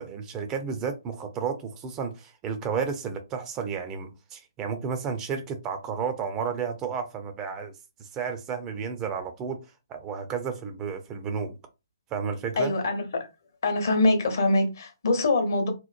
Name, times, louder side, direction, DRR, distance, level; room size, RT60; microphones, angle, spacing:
voice 1, 0.0-7.7 8.0-9.6 9.9-11.5 12.1-12.8, right 6 dB, 20° right, 0.4 m, -32 dB
voice 2, 12.6-13.3 13.6-15.7, left 2 dB, 55° left, 0.8 m, -24 dB
2.9 x 2.0 x 2.4 m
figure-of-eight pair, 130°, 2 cm